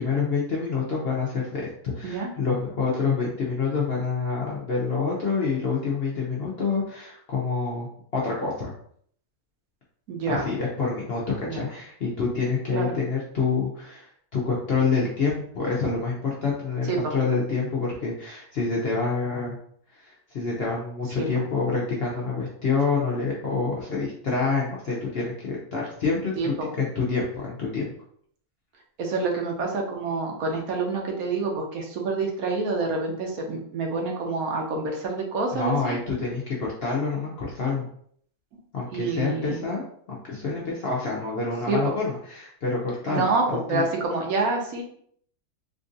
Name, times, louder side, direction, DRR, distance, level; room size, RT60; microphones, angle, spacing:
voice 1, 0.0-8.7 10.3-19.6 19.9-27.9 35.5-37.8 38.7-43.3 43.7-43.9, left 4 dB, 55° left, -4 dB, 0.7 m, -27 dB
voice 2, 10.1-10.5 11.5-11.6 12.7-12.9 16.9-17.2 21.2-21.3 26.4-26.7 29.0-36.0 38.9-39.6 41.7-41.8 43.1-44.8, right 3 dB, 70° right, 0 dB, 1.2 m, -27 dB
3.5 x 2.5 x 2.6 m, 0.62 s
omnidirectional pair, 1.6 m